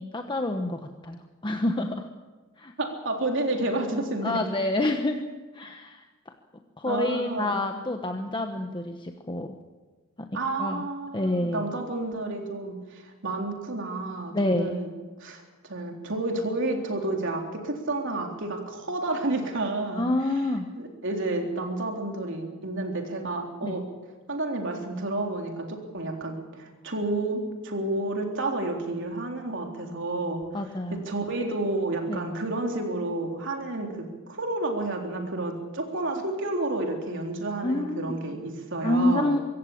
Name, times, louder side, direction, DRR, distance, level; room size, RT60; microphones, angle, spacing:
voice 1, 0.0-2.0 2.6-2.7 4.2-5.3 5.5-6.0 6.8-9.6 10.2-10.3 10.6-10.8 11.1-11.7 14.3-14.8 20.0-20.7 23.6-23.8 30.5-31.0 32.1-32.2 37.6-38.2 38.8-39.4, left 1 dB, 20° left, 5 dB, 1.1 m, -28 dB
voice 2, 2.8-4.4 6.9-7.7 10.3-14.9 15.2-20.1 20.8-23.8 24.3-39.3, right 2 dB, 60° right, 2 dB, 3.7 m, -30 dB
24.5 x 15.0 x 8.7 m, 1.3 s
head